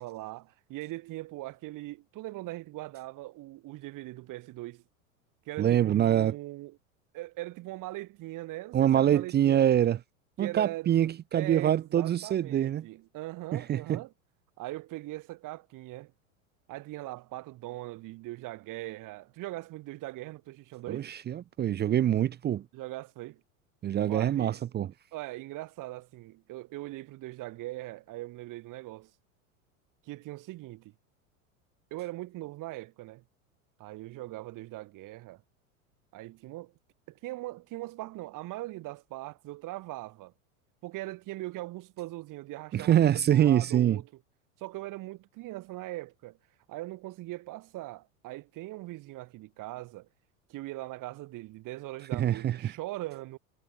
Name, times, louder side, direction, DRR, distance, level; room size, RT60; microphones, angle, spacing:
voice 1, 0.0-4.8 5.4-6.8 7.1-9.7 10.4-14.1 14.6-16.1 16.7-21.1 22.7-23.4 24.1-24.6 25.1-29.1 30.0-30.9 31.9-33.2 33.8-35.4 36.1-36.7 37.1-40.3 40.8-44.2 44.6-46.4 46.7-50.1 50.5-53.4, right 18 dB, 50° right, 3.3 m, -40 dB
voice 2, 5.6-6.3 8.7-10.0 10.4-12.8 13.5-14.0 20.9-22.6 23.8-24.9 42.7-44.0 52.1-52.7, right 11 dB, 25° right, 0.6 m, -25 dB
hypercardioid pair, 90°, 42 cm